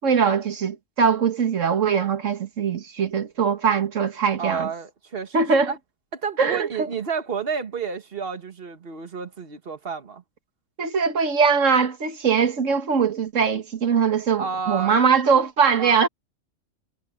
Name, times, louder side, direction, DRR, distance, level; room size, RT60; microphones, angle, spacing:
voice 1, 0.0-4.7 5.3-5.7 6.4-6.9 10.8-16.1, right 6 dB, 75° right, 1.9 m, -21 dB
voice 2, 4.4-5.8 6.1-10.2 14.4-15.0 15.8-16.0, right 6 dB, 50° right, 1.7 m, -31 dB
omnidirectional pair, 1.3 m